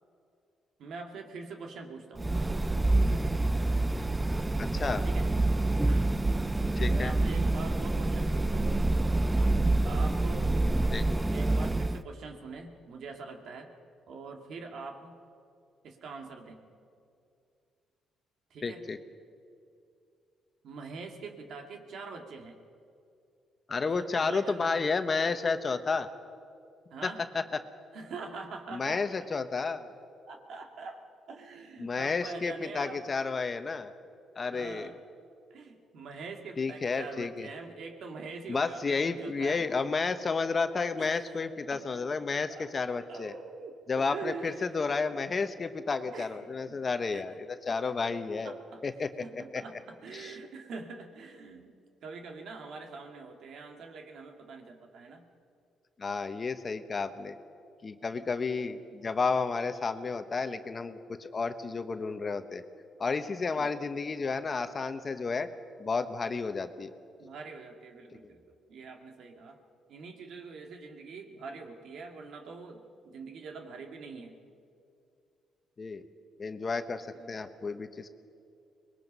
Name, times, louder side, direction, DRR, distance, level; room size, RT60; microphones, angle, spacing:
voice 1, 0.8-2.4 5.0-5.3 5.8-6.2 6.9-8.8 9.8-10.5 11.3-13.7 14.1-15.2 15.8-16.6 18.5-18.9 20.6-22.6 23.8-24.9 26.9-27.3 27.9-29.1 30.3-31.0 31.3-33.1 34.5-34.9 35.5-39.7 41.0-41.1 41.7-41.8 42.5-42.7 43.1-44.7 46.1-46.8 47.1-47.2 47.7-47.9 48.3-51.7 52.0-55.3 58.1-58.3 63.5-63.7 67.2-69.6 69.9-74.4 77.1-77.4, right 4 dB, 65° right, 3 dB, 2.2 m, -44 dB
sound 1, 2.2-12.0, right 2 dB, 15° right, 0.5 m, -27 dB
voice 2, 4.6-5.0 6.8-7.1 10.9-11.1 18.6-19.0 23.7-26.1 27.0-27.4 28.7-29.8 31.8-33.9 34.4-34.9 36.6-37.5 38.5-43.3 43.9-48.5 48.8-49.1 49.5-49.6 50.1-50.3 56.0-57.3 57.8-62.6 63.0-65.5 65.8-66.9 75.8-76.0 76.4-78.1, left 4 dB, 35° left, 9 dB, 1.1 m, -31 dB
24.5 x 21.0 x 5.5 m, 2.4 s
cardioid pair, 105°, 0 cm